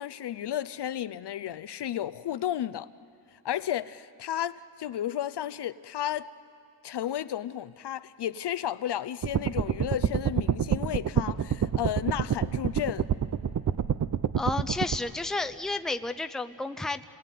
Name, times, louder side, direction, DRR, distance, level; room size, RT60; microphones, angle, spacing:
voice 1, 0.0-2.9 3.4-6.3 6.8-13.1, left 11 dB, 60° left, 0.6 m, -33 dB
sound 1, 9.2-15.0, right 8 dB, 40° right, 0.6 m, -27 dB
voice 2, 14.4-17.0, left 3 dB, ahead, 0.6 m, -31 dB
27.5 x 20.5 x 9.2 m
wide cardioid pair, 105°, 46 cm